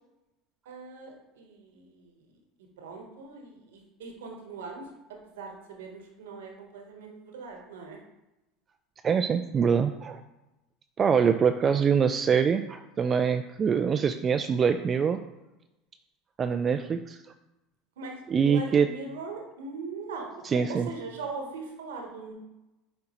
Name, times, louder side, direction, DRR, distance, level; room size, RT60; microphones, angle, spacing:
voice 1, 0.6-2.1 2.8-8.0 16.6-16.9 18.0-18.1 18.4-22.3, right 4 dB, 80° right, 2 dB, 1.1 m, -41 dB
voice 2, 9.0-10.2 11.0-15.2 16.4-17.2 18.3-18.9 20.4-20.9, right 6 dB, 35° right, 8 dB, 0.3 m, -24 dB
7.6 x 4.3 x 3.0 m, 0.98 s
hypercardioid pair, 80°, 0 cm